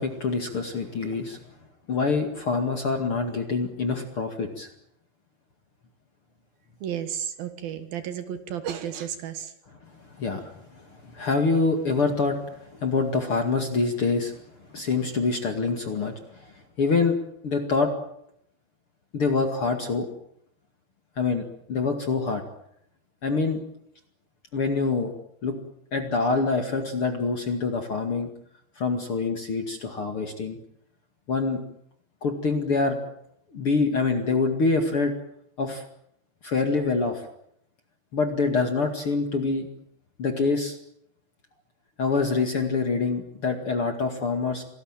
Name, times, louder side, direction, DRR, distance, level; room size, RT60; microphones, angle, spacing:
voice 1, 0.0-1.4 1.9-4.7 10.2-10.5 11.0-12.4 12.8-14.3 14.7-16.1 16.4-16.5 16.8-17.2 17.4-17.9 19.1-20.1 21.2-22.4 23.2-23.6 24.5-25.1 25.4-25.5 25.9-28.3 28.8-30.6 31.3-31.6 32.2-33.0 33.5-35.1 35.6-35.8 36.4-37.2 38.1-39.7 40.2-40.8 42.0-44.6, left 4 dB, 40° left, 5 dB, 2.4 m, -25 dB
voice 2, 6.8-9.5, right 9 dB, 65° right, 10 dB, 3.2 m, -33 dB
27.0 x 19.0 x 9.0 m, 0.72 s
omnidirectional pair, 4.9 m